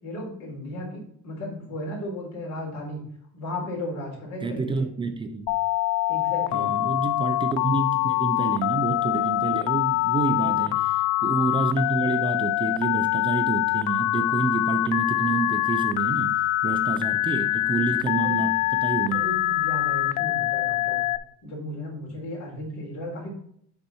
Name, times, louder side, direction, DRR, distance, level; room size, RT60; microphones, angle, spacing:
voice 1, 0.0-3.0 3.3-4.9 6.1-6.8 10.3-10.7 18.2-18.5 19.1-21.1 21.4-23.3, left 1 dB, 65° left, 3.8 m, -35 dB
voice 2, 4.4-5.5 6.5-19.2, right 4 dB, 15° right, 0.3 m, -28 dB
Telephone, 5.5-21.2, left 16 dB, 90° left, 0.6 m, -24 dB
11.0 x 4.3 x 4.3 m
cardioid pair, 175°, 30 cm